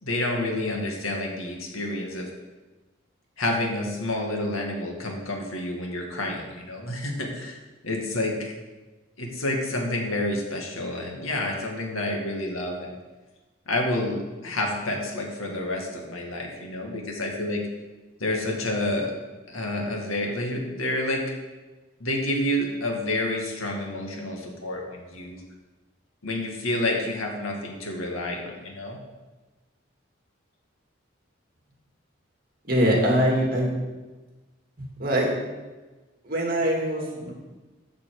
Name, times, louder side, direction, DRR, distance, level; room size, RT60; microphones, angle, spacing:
voice 1, 0.0-2.3 3.4-7.6 7.8-8.5 9.2-12.9 13.7-17.6 18.2-19.1 19.5-21.2 22.0-25.4 26.2-29.0, left 1 dB, 90° left, 0 dB, 2.2 m, -29 dB
voice 2, 32.6-33.7 34.8-35.3 36.2-37.3, equal, 45° right, -1 dB, 2.5 m, -23 dB
14.0 x 6.0 x 5.0 m, 1.2 s
head